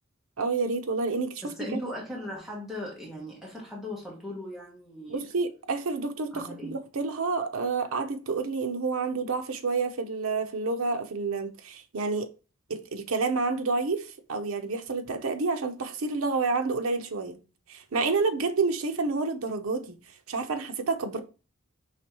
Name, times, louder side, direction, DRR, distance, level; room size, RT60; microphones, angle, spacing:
voice 1, 0.4-1.8 5.1-12.3 12.7-17.4 17.7-20.0 20.3-21.2, right 4 dB, 80° right, 0.6 m, -29 dB
voice 2, 1.4-5.2 6.3-6.7, left 1 dB, ahead, 1.1 m, -38 dB
5.0 x 3.0 x 2.9 m
head